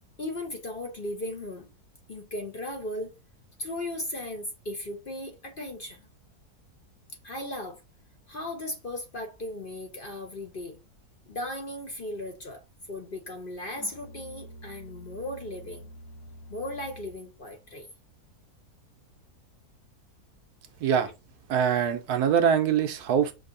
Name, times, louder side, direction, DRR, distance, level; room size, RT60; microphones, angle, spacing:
voice 1, 0.2-1.7 2.1-3.1 3.6-6.0 7.2-7.8 8.3-10.8 11.3-12.6 12.9-15.9 16.5-17.9, left 1 dB, 40° left, 0.9 m, -36 dB
Musical instrument, 13.7-17.3, right 1 dB, 65° left, 1.3 m, -47 dB
voice 2, 21.5-23.3, right 8 dB, 75° right, 1.3 m, -23 dB
6.0 x 2.8 x 2.6 m
omnidirectional pair, 1.7 m